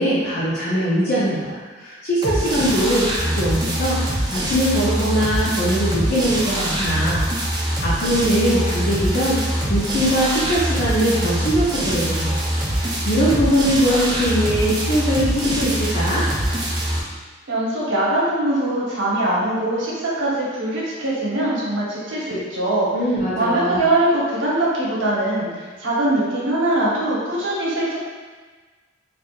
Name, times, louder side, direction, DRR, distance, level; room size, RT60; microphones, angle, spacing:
voice 1, 0.0-1.5 1.8-7.3 7.6-9.4 9.7-12.4 12.7-16.3 22.9-23.8, equal, 55° left, -9 dB, 0.6 m, -21 dB
sound 1, 2.2-17.0, right 1 dB, 20° right, 0.5 m, -23 dB
voice 2, 17.5-22.9 23.4-28.0, right 1 dB, 75° right, -6 dB, 0.9 m, -22 dB
4.3 x 2.5 x 2.4 m, 1.4 s
head